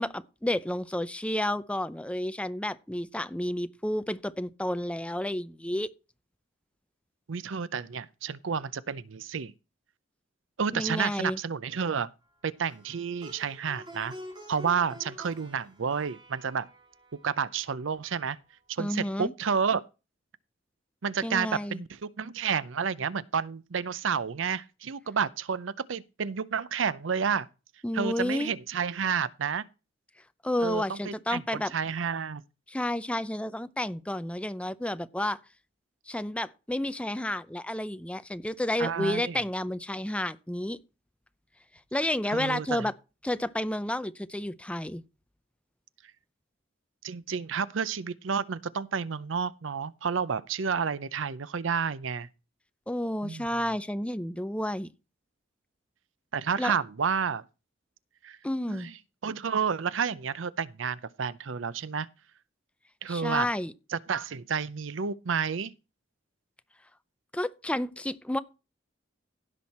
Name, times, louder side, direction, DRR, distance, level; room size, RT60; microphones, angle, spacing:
voice 1, 0.0-5.9 10.7-11.4 18.8-19.3 21.2-21.8 27.8-28.5 30.4-31.7 32.7-35.4 36.1-40.8 41.9-42.9 43.2-45.0 52.9-54.9 56.6-56.7 58.4-58.9 63.1-63.7 67.3-68.4, left 1 dB, 5° left, 0.5 m, -31 dB
voice 2, 7.3-9.5 10.6-12.1 12.4-14.1 14.5-16.7 17.2-18.4 18.7-19.8 21.0-27.5 27.9-29.6 30.6-32.4 38.8-39.4 42.3-42.9 47.0-52.3 53.2-53.5 56.3-57.4 58.2-58.4 58.7-58.9 59.2-62.1 63.0-63.5 63.9-65.7, right 6 dB, 75° right, 0.6 m, -30 dB
Plucked string instrument, 12.7-17.9, equal, 25° right, 2.7 m, -48 dB
16.0 x 6.3 x 4.2 m
head